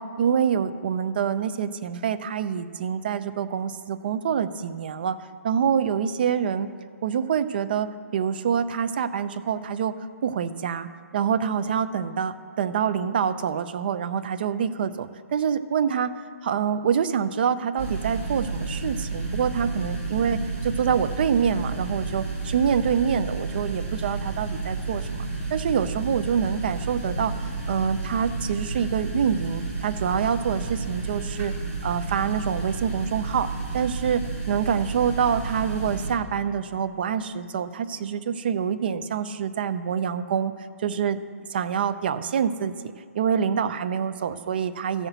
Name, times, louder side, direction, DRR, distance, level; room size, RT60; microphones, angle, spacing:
voice 1, 0.0-5.2 5.4-6.7 7.0-9.9 10.2-10.9 11.1-16.1 16.4-27.3 27.7-31.5 31.8-40.5 40.8-41.2 41.5-45.1, right 7 dB, 40° right, 11 dB, 0.5 m, -26 dB
sound 1, 17.8-36.1, right 3 dB, 20° right, 2.5 m, -31 dB
14.0 x 5.8 x 8.0 m, 2.3 s
hypercardioid pair, 165°, 8 cm